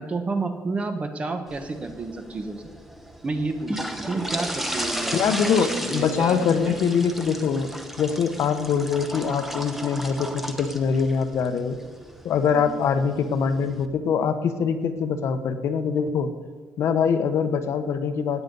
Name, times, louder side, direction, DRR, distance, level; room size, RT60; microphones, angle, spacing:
voice 1, 0.0-2.6 3.2-6.7 12.5-12.7, right 3 dB, 25° right, 7 dB, 1.1 m, -30 dB
sound 1, 1.5-13.8, equal, 5° right, 0.8 m, -35 dB
voice 2, 5.1-7.7 8.0-11.8 12.2-16.3 16.8-18.4, left 6 dB, 60° left, 9 dB, 0.9 m, -23 dB
16.5 x 9.2 x 5.4 m, 1.4 s
cardioid pair, 170°, 5 cm